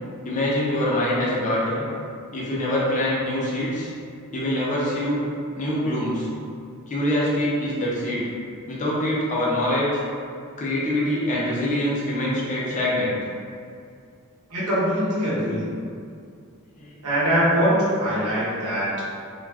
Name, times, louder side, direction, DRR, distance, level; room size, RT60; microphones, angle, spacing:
voice 1, 0.2-1.9 2.3-3.9 4.3-5.2 5.6-6.3 6.9-8.2 8.7-9.9 10.6-13.1 16.8-16.9, left 1 dB, 35° left, -6 dB, 0.6 m, -24 dB
voice 2, 14.5-15.7 17.0-18.9, equal, 85° right, -9 dB, 1.1 m, -22 dB
2.4 x 2.2 x 3.3 m, 2.3 s
head